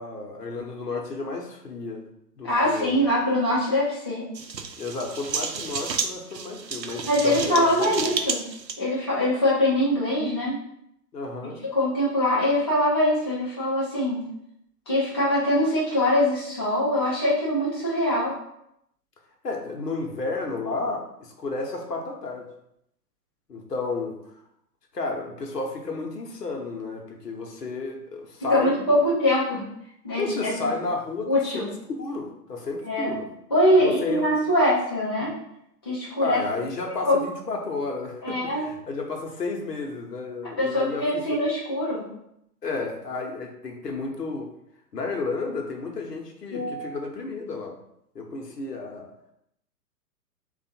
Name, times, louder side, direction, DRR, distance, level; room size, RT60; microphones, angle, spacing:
voice 1, 0.0-2.0 2.4-3.0 4.8-8.3 11.1-11.6 19.4-22.5 23.5-24.2 24.9-29.1 30.1-31.7 32.0-33.3 33.8-34.2 36.2-41.4 42.6-44.5 44.9-47.8 48.1-49.1, left 3 dB, 70° left, 1 dB, 1.0 m, -32 dB
voice 2, 2.4-4.3 7.1-8.4 8.8-10.6 11.4-14.2 14.9-18.3 28.5-29.7 30.0-30.7 31.3-31.7 32.8-33.1 33.5-35.3 35.9-36.4 37.1-37.2 38.2-38.7 40.6-42.1 46.5-46.9, left 1 dB, 15° left, -8 dB, 0.4 m, -23 dB
sound 1, 4.3-8.8, right 5 dB, 85° right, 0.6 m, -31 dB
3.4 x 2.5 x 4.3 m, 0.77 s
figure-of-eight pair, 115°, 50 cm